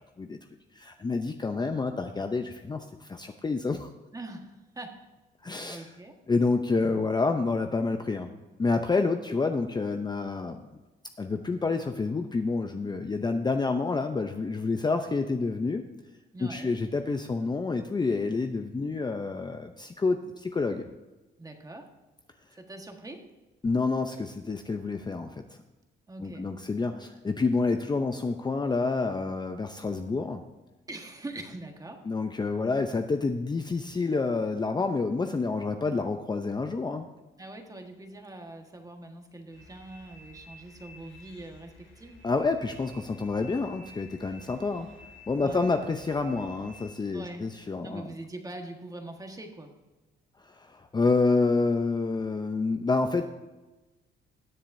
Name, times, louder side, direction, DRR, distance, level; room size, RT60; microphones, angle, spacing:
voice 1, 0.8-3.9 5.4-5.9 6.3-8.3 8.6-10.7 11.2-15.8 16.4-20.9 23.6-25.4 26.2-30.4 32.1-37.1 42.2-44.9 45.3-48.1 50.4-53.2, left 3 dB, 20° left, 6 dB, 0.6 m, -28 dB
voice 2, 4.1-5.1 5.7-6.2 16.3-16.7 21.4-21.9 22.6-23.3 26.1-26.5 30.9-32.1 37.4-42.2 45.4-45.7 47.1-47.4 47.8-49.8, right 2 dB, 20° right, 3 dB, 1.5 m, -43 dB
sound 1, 39.5-46.9, left 2 dB, 70° left, 2.2 m, -52 dB
20.0 x 7.2 x 2.7 m, 1.1 s
cardioid pair, 90°, 20 cm